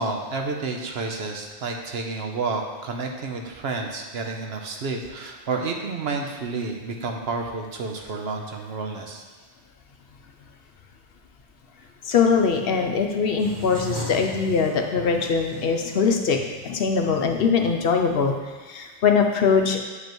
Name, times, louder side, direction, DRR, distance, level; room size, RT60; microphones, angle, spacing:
voice 1, 0.0-9.2, right 3 dB, 65° right, 2 dB, 1.0 m, -30 dB
voice 2, 12.0-19.8, left 5 dB, 65° left, 3 dB, 0.8 m, -22 dB
sound 1, 13.4-18.3, left 2 dB, 20° right, 1.2 m, -38 dB
8.1 x 5.3 x 3.0 m, 1.3 s
omnidirectional pair, 1.1 m